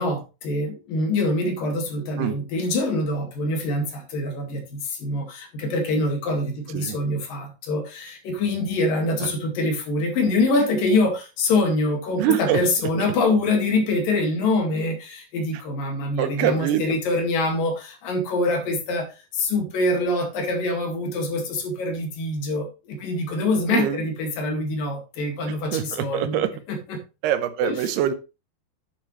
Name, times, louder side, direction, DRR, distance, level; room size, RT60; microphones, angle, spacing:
voice 1, 0.0-19.1 19.3-26.4 26.7-27.0 27.6-27.7, left 2 dB, 60° left, 3 dB, 3.6 m, -25 dB
voice 2, 12.2-12.6 16.2-17.0 23.7-24.0 25.5-26.5 27.2-28.1, right 10 dB, 75° right, 10 dB, 2.8 m, -24 dB
11.5 x 7.4 x 3.2 m, 0.30 s
omnidirectional pair, 4.9 m